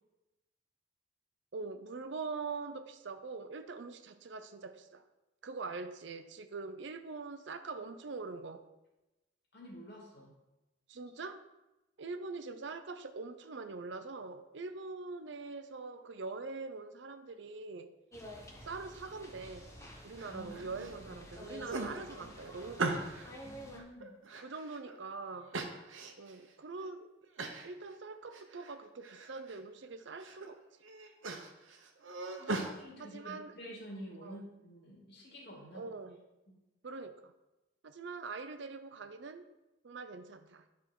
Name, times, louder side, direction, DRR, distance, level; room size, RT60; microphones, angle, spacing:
voice 1, 1.5-5.0 5.4-8.6 10.9-11.4 12.0-17.9 18.6-19.7 20.0-23.2 24.4-25.5 26.2-27.1 27.6-30.6 33.0-33.5 34.2-34.4 35.7-36.2 36.8-37.3 37.8-39.4 39.8-40.6, right 4 dB, 65° right, 9 dB, 0.6 m, -43 dB
voice 2, 9.5-10.3 20.3-21.1 23.4-24.1 32.4-35.9 36.5-36.6, equal, 55° left, -4 dB, 2.6 m, -50 dB
sound 1, 18.1-23.8, equal, 15° left, 1.1 m, -49 dB
sound 2, 20.2-20.9 21.3-23.3 23.8-25.0 25.5-26.4 26.8-26.9 27.4-27.7 28.1-28.7 29.0-29.6 30.0-30.5 30.8-32.7, right 3 dB, 85° right, 0.9 m, -40 dB
10.5 x 4.6 x 4.6 m, 1.0 s
head